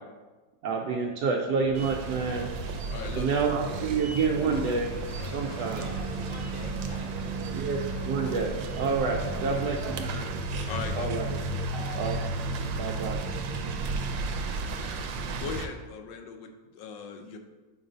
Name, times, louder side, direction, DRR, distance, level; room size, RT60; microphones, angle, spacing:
voice 1, 0.6-2.5 3.1-4.9 5.2-5.8 7.5-10.2 10.9-11.3 12.0-12.2 12.7-13.2, right 5 dB, 70° right, -1 dB, 1.0 m, -28 dB
Scratching (performance technique), 1.5-1.9 2.1-3.3 3.6-4.7 5.0-6.1 6.4-7.5 7.8-8.8 9.1-9.7 9.9-10.2 10.5-11.3, left 4 dB, 65° left, 0.9 m, -47 dB
sound 1, 1.7-15.7, right 3 dB, 90° right, 1.3 m, -33 dB
voice 2, 2.9-3.3 10.7-11.1 15.4-17.4, left 6 dB, 85° left, 5 dB, 1.4 m, -39 dB
sound 2, 4.3-8.6, equal, 10° left, 0.9 m, -45 dB
voice 3, 5.6-7.5 9.1-10.3 11.5-12.1, right 1 dB, 35° right, -2 dB, 1.1 m, -45 dB
7.6 x 2.6 x 5.0 m, 1.3 s
omnidirectional pair, 2.0 m